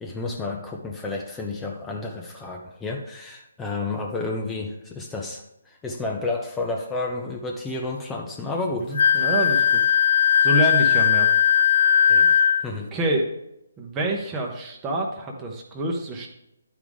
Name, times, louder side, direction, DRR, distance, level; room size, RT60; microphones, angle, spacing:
voice 1, 0.0-9.3 12.1-12.9, left 3 dB, 10° left, 0 dB, 0.6 m, -31 dB
voice 2, 8.8-9.8 10.4-11.3 12.9-13.3 13.8-16.3, right 1 dB, 15° right, 0 dB, 0.9 m, -26 dB
Wind instrument woodwind instrument, 9.0-12.7, left 8 dB, 60° left, 0.3 m, -18 dB
10.5 x 4.8 x 3.5 m, 0.83 s
figure-of-eight pair, 145°, 0 cm